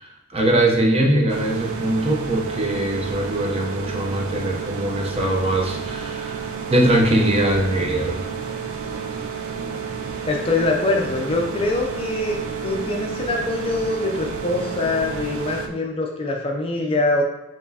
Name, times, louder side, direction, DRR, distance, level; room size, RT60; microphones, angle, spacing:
voice 1, 0.0-8.2, right 1 dB, 30° right, 0 dB, 0.7 m, -21 dB
sound 1, 1.3-15.7, right 6 dB, 75° right, 0.4 m, -31 dB
voice 2, 10.3-17.2, left 2 dB, 25° left, 1 dB, 0.4 m, -24 dB
4.4 x 3.0 x 2.7 m, 1.0 s
head